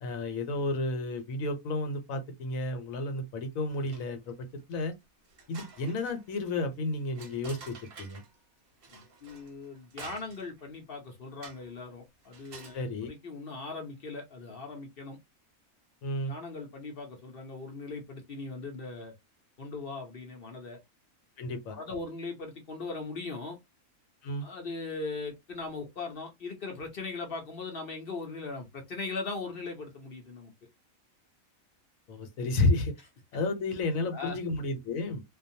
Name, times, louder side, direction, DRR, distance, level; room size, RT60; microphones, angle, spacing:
voice 1, 0.0-4.9 5.5-8.2 12.7-13.1 16.0-16.3 21.4-21.8 24.2-24.5 32.1-32.9 33.3-35.2, left 2 dB, 75° left, 1.1 m, -32 dB
sound 1, 3.7-4.3 4.7-4.8 5.2-8.4 8.8-10.6 11.4-11.8 12.2-12.8, right 4 dB, 50° right, 0.8 m, -50 dB
voice 2, 8.9-15.2 16.3-19.1 19.6-20.8 21.7-23.6 24.4-30.5 34.0-34.4, left 3 dB, 50° left, 0.8 m, -39 dB
2.5 x 2.2 x 2.6 m
omnidirectional pair, 1.5 m